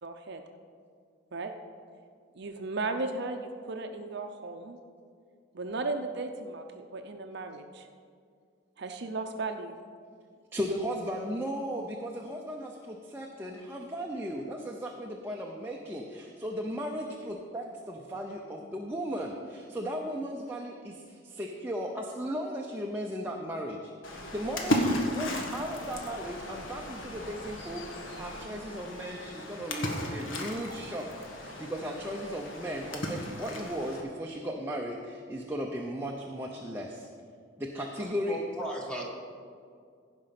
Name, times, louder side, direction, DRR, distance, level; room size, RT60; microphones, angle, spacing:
voice 1, 0.0-0.4 1.3-1.5 2.4-4.8 5.5-7.9 8.8-9.7, right 3 dB, 55° right, 6 dB, 0.6 m, -35 dB
voice 2, 10.5-31.1 31.4-37.1 37.6-38.4, equal, 10° right, 0 dB, 0.7 m, -36 dB
Splash splatter, 24.0-34.0, left 1 dB, 70° left, 1.4 m, -35 dB
voice 3, 38.0-39.0, right 1 dB, 5° left, -2 dB, 1.7 m, -37 dB
15.5 x 5.3 x 5.8 m, 2.2 s
head